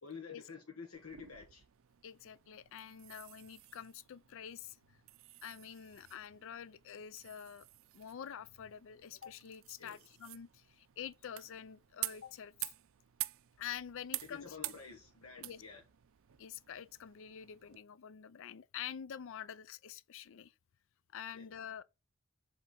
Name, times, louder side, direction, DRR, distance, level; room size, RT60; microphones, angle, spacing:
voice 1, 0.0-1.6 9.8-10.0 14.2-15.8 21.3-21.5, left 5 dB, 85° left, 1.3 m, -50 dB
sound 1, 0.9-17.8, right 17 dB, 70° right, 0.4 m, -49 dB
voice 2, 2.0-4.8 5.4-7.7 7.9-12.7 13.6-14.7 15.4-15.6 16.4-20.5 21.1-21.8, left 9 dB, 65° left, 0.4 m, -47 dB
7.5 x 3.2 x 4.2 m
head